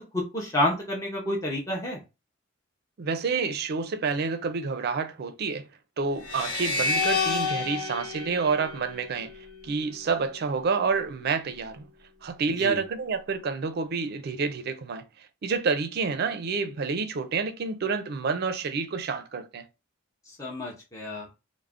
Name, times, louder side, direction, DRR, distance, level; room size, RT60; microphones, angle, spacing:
voice 1, 0.0-2.0 12.6-12.8 20.4-21.3, left 1 dB, 15° left, 0.5 m, -29 dB
voice 2, 3.0-5.7 6.0-9.3 9.6-11.9 12.2-15.0 15.4-19.7, right 5 dB, 50° right, 0.4 m, -28 dB
sound 1, 6.2-9.5, left 4 dB, 80° left, 1.0 m, -29 dB
2.4 x 2.0 x 3.4 m
head